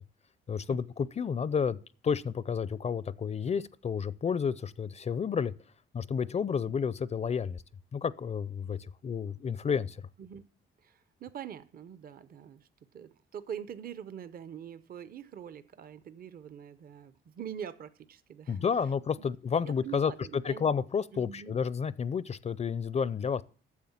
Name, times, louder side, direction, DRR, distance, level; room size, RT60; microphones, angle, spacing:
voice 1, 0.5-1.8 2.0-5.5 5.9-7.6 7.9-10.0 18.5-20.1 20.4-23.4, left 6 dB, 35° left, 0.5 m, -31 dB
voice 2, 10.8-12.7 12.9-18.6 19.2-19.3 19.6-20.7 21.1-21.6, right 9 dB, 50° right, 0.7 m, -44 dB
9.4 x 7.2 x 7.2 m
cardioid pair, 90°, 20 cm